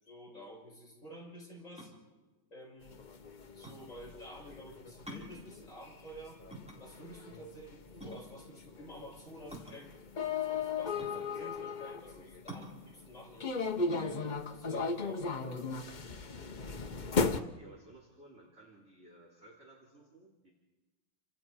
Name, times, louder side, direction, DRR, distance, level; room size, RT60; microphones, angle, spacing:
voice 1, 0.0-1.9 2.5-3.0 3.5-6.4 6.8-9.9 10.8-13.5 14.0-15.6, equal, 35° left, -4 dB, 7.4 m, -50 dB
sound 1, 1.8-16.0, equal, 5° right, 4.0 m, -50 dB
sound 2, 2.9-12.7 13.4-17.4, left 4 dB, 65° left, 0.4 m, -36 dB
voice 2, 16.3-20.5, right 2 dB, 30° right, -3 dB, 3.4 m, -56 dB
29.5 x 26.5 x 4.7 m, 1.2 s
omnidirectional pair, 2.2 m